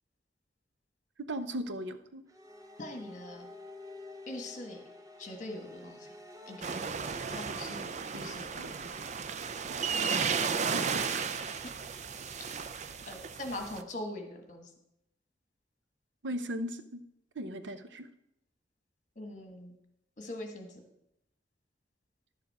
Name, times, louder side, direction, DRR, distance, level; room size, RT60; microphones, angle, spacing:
voice 1, 1.3-2.2 10.6-11.3 16.2-17.0 17.4-18.1, equal, 75° right, 11 dB, 0.7 m, -37 dB
sound 1, 2.3-7.2, left 2 dB, 20° right, 0.8 m, -49 dB
voice 2, 2.8-3.5 4.3-4.8 5.2-6.1 6.5-6.8 7.3-8.8 12.4-12.5 13.1-14.7 19.1-19.8 20.2-20.8, left 1 dB, 40° left, 4 dB, 1.5 m, -42 dB
sound 2, 6.6-13.8, right 6 dB, 40° right, 0.4 m, -34 dB
11.0 x 7.2 x 4.7 m, 0.82 s
head